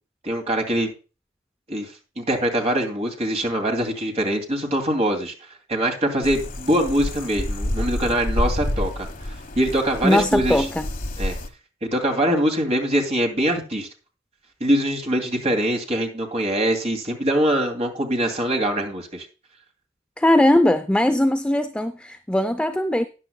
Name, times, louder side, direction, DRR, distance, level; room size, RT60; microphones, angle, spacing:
voice 1, 0.2-0.9 1.7-1.9 2.2-5.3 5.7-10.7 11.2-11.4 11.8-13.9 14.6-19.3, right 1 dB, 35° right, 2.6 m, -23 dB
sound 1, 6.2-11.5, left 1 dB, 45° left, 1.2 m, -28 dB
voice 2, 10.0-10.9 20.2-23.0, left 1 dB, 5° left, 0.5 m, -20 dB
13.5 x 9.9 x 2.2 m
head